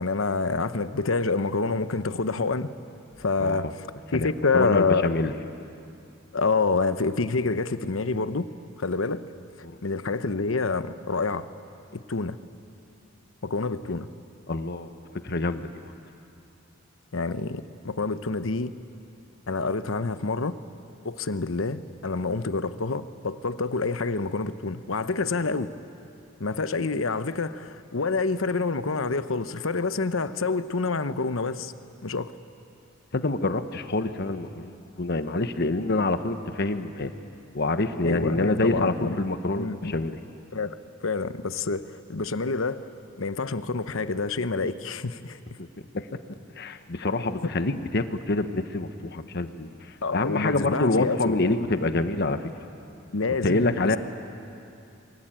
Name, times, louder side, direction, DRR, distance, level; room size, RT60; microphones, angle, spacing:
voice 1, 0.0-2.7 3.2-3.9 4.1-5.1 6.3-8.5 8.8-9.2 9.8-11.5 11.9-12.4 13.4-14.1 17.1-18.7 19.5-20.5 21.0-25.7 26.4-31.7 32.0-32.3 38.0-39.2 39.5-39.9 40.5-40.8 41.0-42.8 43.2-45.4 47.4-47.5 50.0-51.4 53.1-54.0, left 3 dB, 85° left, 12 dB, 1.0 m, -27 dB
voice 2, 3.4-3.7 4.1-5.3 9.6-9.8 14.5-14.9 15.2-15.7 33.1-37.1 37.5-40.2 45.6-45.7 45.9-46.1 46.6-49.7 50.1-52.4 53.4-54.0, left 2 dB, 55° left, 9 dB, 1.2 m, -26 dB
28.0 x 23.0 x 9.0 m, 2.6 s
head